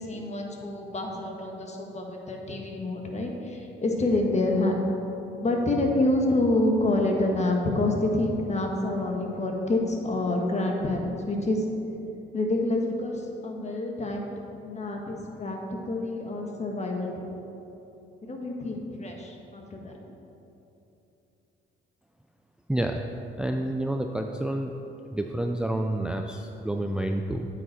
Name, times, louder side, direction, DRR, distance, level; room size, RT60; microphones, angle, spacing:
voice 1, 0.0-4.8 5.4-11.7 12.3-14.3 14.6-15.6 15.8-17.4 18.2-19.9, left 2 dB, 35° left, 1 dB, 1.5 m, -27 dB
voice 2, 22.7-23.0 23.4-24.7 25.1-27.5, right 1 dB, 5° right, 4 dB, 0.4 m, -29 dB
8.8 x 8.5 x 4.2 m, 2.9 s
cardioid pair, 90°, 20 cm